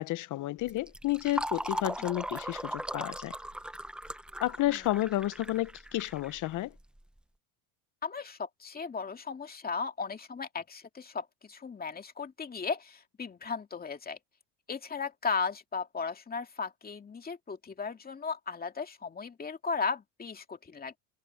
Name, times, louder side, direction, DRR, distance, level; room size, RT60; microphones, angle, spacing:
voice 1, 0.0-3.3 4.4-6.7, left 16 dB, 45° left, 0.7 m, -31 dB
Fill (with liquid), 0.6-7.0, right 1 dB, ahead, 0.7 m, -38 dB
voice 2, 8.0-14.2 14.7-21.0, left 5 dB, 20° left, 2.3 m, -36 dB
cardioid pair, 120°, 43 cm